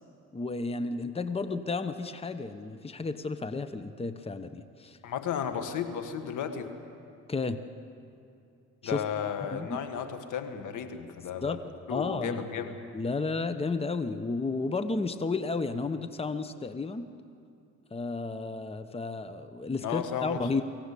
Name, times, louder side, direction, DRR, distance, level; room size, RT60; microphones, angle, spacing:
voice 1, 0.3-5.0 7.3-7.6 8.8-9.0 9.5-9.8 11.4-12.4 12.9-17.1 17.9-20.6, left 3 dB, 20° left, 10 dB, 1.0 m, -32 dB
voice 2, 5.0-6.7 8.8-11.6 11.9-12.8 19.8-20.6, left 7 dB, 80° left, 7 dB, 1.8 m, -34 dB
24.0 x 16.5 x 8.4 m, 2.6 s
cardioid pair, 90°, 30 cm